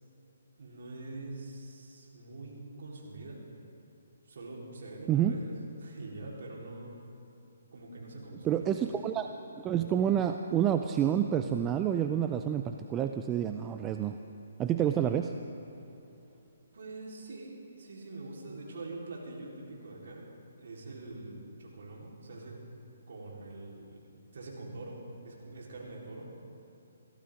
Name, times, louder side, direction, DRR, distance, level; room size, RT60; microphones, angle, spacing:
voice 1, 0.6-3.5 4.2-7.0 7.7-8.7 16.7-20.3 20.6-22.6 23.1-24.0 24.3-26.3, right 2 dB, 60° right, -3 dB, 4.2 m, -44 dB
voice 2, 8.4-9.3 9.6-14.2 14.6-15.3, right 9 dB, 20° right, 7 dB, 0.5 m, -28 dB
22.5 x 15.5 x 3.8 m, 2.8 s
figure-of-eight pair, 140°, 0 cm